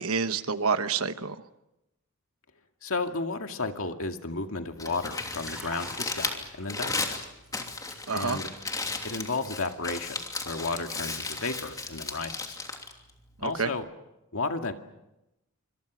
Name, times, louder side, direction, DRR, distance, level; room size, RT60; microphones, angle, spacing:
voice 1, 0.0-1.4 8.1-8.4 13.4-13.7, right 5 dB, 70° right, 11 dB, 1.2 m, -28 dB
voice 2, 2.8-7.2 8.1-8.5 9.0-10.2 10.4-12.6 13.4-13.9 14.3-14.7, left 3 dB, 65° left, 5 dB, 2.2 m, -33 dB
Crumpling crinkling, 4.6-13.8, left 3 dB, 15° left, 3.0 m, -35 dB
Liquid, 5.1-8.4 8.7-9.0, equal, 5° right, 7.4 m, -47 dB
28.0 x 26.0 x 6.3 m, 0.92 s
head